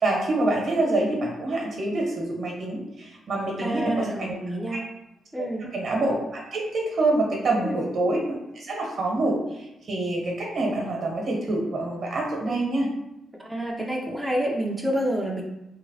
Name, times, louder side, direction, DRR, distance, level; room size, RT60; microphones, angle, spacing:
voice 1, 0.0-4.3 5.4-5.5 5.7-12.9, right 2 dB, 65° right, -1 dB, 0.9 m, -26 dB
voice 2, 3.6-4.8 5.3-5.6 7.6-7.8 12.4-12.6 13.4-15.4, right 1 dB, 5° right, -2 dB, 0.4 m, -28 dB
3.0 x 2.2 x 2.6 m, 0.89 s
cardioid pair, 70°, 0 cm